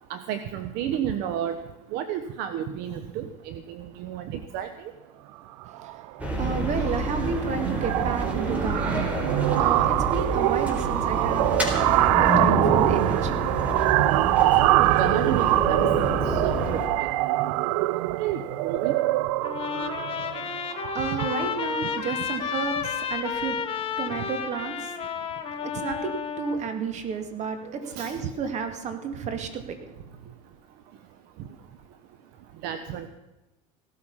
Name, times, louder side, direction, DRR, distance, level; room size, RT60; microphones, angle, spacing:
voice 1, 0.1-1.6 1.9-4.9 8.4-8.5 8.9-9.1 10.6-10.7 14.6-17.1 18.1-19.0 27.6-28.3 32.6-33.1, right 10 dB, 60° right, 10 dB, 1.0 m, -32 dB
voice 2, 5.6-9.1 9.6-13.9 20.8-30.3, right 5 dB, 40° right, 7 dB, 2.3 m, -32 dB
sound 1, 5.6-5.9 6.2-6.5 6.7-21.6, right 18 dB, 75° right, 0.4 m, -24 dB
sound 2, 6.2-16.9, equal, 10° right, 4.0 m, -28 dB
Trumpet, 19.4-26.6, left 7 dB, 30° left, 1.8 m, -31 dB
17.0 x 13.0 x 5.6 m, 1.0 s
supercardioid pair, 110°, 18 cm